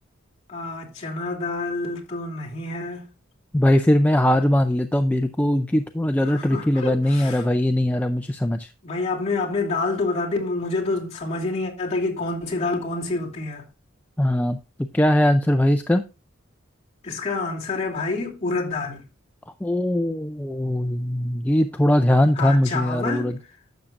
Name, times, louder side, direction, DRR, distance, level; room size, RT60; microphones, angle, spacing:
voice 1, 0.5-3.1 6.2-7.5 8.8-13.6 17.0-19.0 22.3-23.4, left 3 dB, 35° left, 2.6 m, -28 dB
voice 2, 3.5-8.7 14.2-14.6 14.9-16.0 19.6-23.4, left 1 dB, 10° left, 0.4 m, -20 dB
11.5 x 7.2 x 2.5 m
head